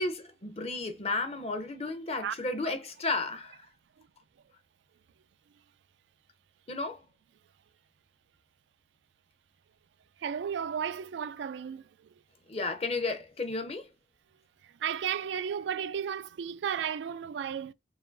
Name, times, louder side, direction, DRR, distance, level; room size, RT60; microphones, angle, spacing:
voice 1, 0.0-3.7 6.7-7.0 12.5-13.9, left 3 dB, 35° left, 0.7 m, -33 dB
voice 2, 10.2-12.1 14.6-17.7, right 8 dB, 85° right, 0.3 m, -34 dB
4.9 x 2.4 x 2.6 m
head